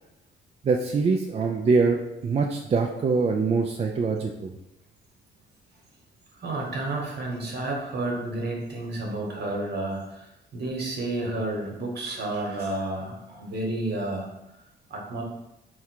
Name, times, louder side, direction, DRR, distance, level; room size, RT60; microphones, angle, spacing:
voice 1, 0.6-4.5, right 4 dB, 30° right, 2 dB, 0.4 m, -24 dB
voice 2, 6.4-14.3 14.9-15.2, right 2 dB, 55° right, -1 dB, 1.1 m, -31 dB
3.6 x 2.2 x 4.4 m, 0.91 s
cardioid pair, 90°, 20 cm